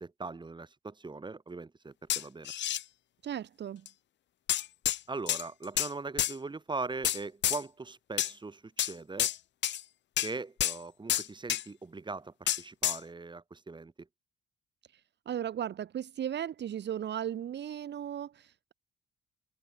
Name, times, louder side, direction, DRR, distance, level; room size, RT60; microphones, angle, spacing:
voice 1, 0.0-2.5 5.1-9.3 10.2-14.1, right 3 dB, 25° right, 3.3 m, -40 dB
sound 1, 2.1-2.8 3.9-4.0 4.5-5.0 5.3-5.9 6.2-6.3 7.0-7.6 8.2-8.3 8.8-8.9 9.2-9.4 9.6-9.8 10.2-10.3 10.6-10.8 11.1-11.6 12.5-13.0, left 11 dB, 65° left, 1.0 m, -29 dB
voice 2, 3.2-3.9 15.3-18.7, right 10 dB, 60° right, 2.0 m, -36 dB
open air
cardioid pair, 90°, 20 cm